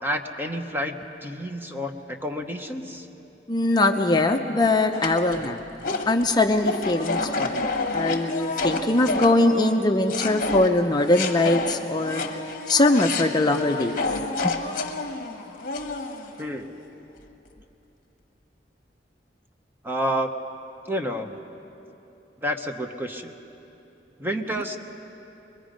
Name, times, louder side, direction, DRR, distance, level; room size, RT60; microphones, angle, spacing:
voice 1, 0.0-3.1 16.4-16.7 19.8-20.3 20.9-21.4 22.4-23.3 24.2-24.8, equal, 10° right, 5 dB, 1.0 m, -29 dB
voice 2, 3.5-5.6 6.1-7.7 7.9-12.2 12.7-14.0 14.4-14.6, left 2 dB, 25° left, 4 dB, 0.6 m, -21 dB
sound 1, 4.9-9.8 10.1-16.4, left 3 dB, 50° left, 1.3 m, -29 dB
23.0 x 22.0 x 5.2 m, 2.9 s
head